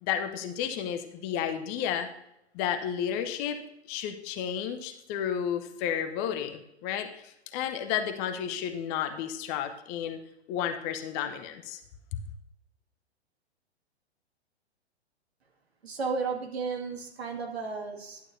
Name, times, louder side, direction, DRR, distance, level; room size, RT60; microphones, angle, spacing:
voice 1, 0.0-2.1 2.5-3.6 3.9-10.2 10.5-11.8 12.1-12.2, left 9 dB, 30° left, 8 dB, 0.8 m, -32 dB
voice 2, 15.8-18.2, right 4 dB, 70° right, 2 dB, 2.2 m, -33 dB
11.0 x 9.0 x 2.7 m, 0.81 s
figure-of-eight pair, 115°, 33 cm